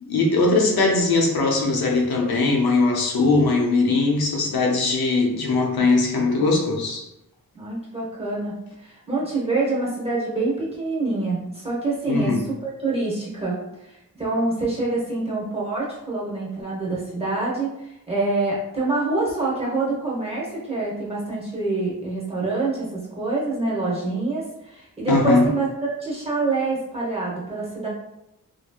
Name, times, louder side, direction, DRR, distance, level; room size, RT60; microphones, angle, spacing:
voice 1, 0.1-7.1 12.1-12.4 25.1-25.5, left 3 dB, 85° left, 0 dB, 0.7 m, -20 dB
voice 2, 7.5-13.6 13.8-27.9, right 3 dB, 15° right, -6 dB, 0.9 m, -26 dB
2.9 x 2.6 x 2.3 m, 0.86 s
wide cardioid pair, 145°, 36 cm